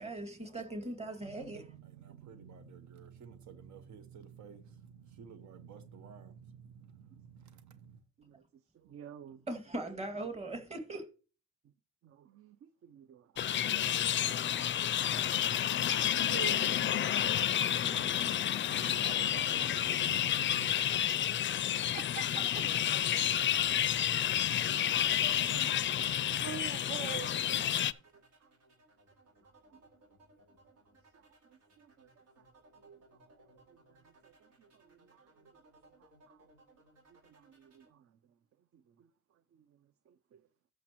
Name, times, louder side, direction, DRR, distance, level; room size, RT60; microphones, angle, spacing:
voice 1, 0.0-1.7 9.5-11.0, right 2 dB, 20° right, 2.1 m, -40 dB
voice 2, 1.2-8.0 17.9-20.7, right 7 dB, 70° right, 0.9 m, -51 dB
voice 3, 8.7-9.4 10.3-10.4 12.0-13.5 14.4-15.0 15.3-19.0 21.9-23.3 24.0-28.5 29.4-29.9 31.1-32.1 32.4-32.5 32.8-33.0 33.3-35.5 36.0-36.5 37.1-38.2 38.7-39.1 39.5-40.4, right 10 dB, 50° right, 0.5 m, -51 dB
sound 1, 13.4-27.9, left 10 dB, 40° left, 0.4 m, -30 dB
sound 2, 25.9-37.9, right 2 dB, 85° right, 4.7 m, -63 dB
13.5 x 6.1 x 3.0 m
cardioid pair, 90°, 30 cm